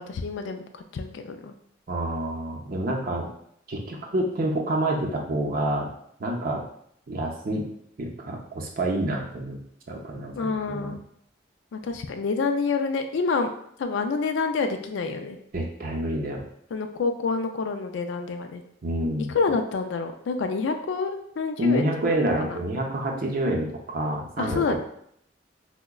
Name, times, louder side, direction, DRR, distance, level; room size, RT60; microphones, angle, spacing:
voice 1, 0.0-1.5 10.3-11.0 11.7-13.5 13.8-15.4 16.7-18.6 19.3-22.2 22.4-22.6 24.4-24.8, left 4 dB, 75° left, 7 dB, 0.3 m, -28 dB
voice 2, 1.9-3.3 3.7-5.9 6.2-6.6 7.1-7.7 8.0-9.6 9.9-10.9 15.5-16.4 18.8-19.3 21.6-24.8, right 1 dB, 50° right, 0 dB, 0.5 m, -27 dB
4.6 x 2.1 x 2.2 m, 0.70 s
head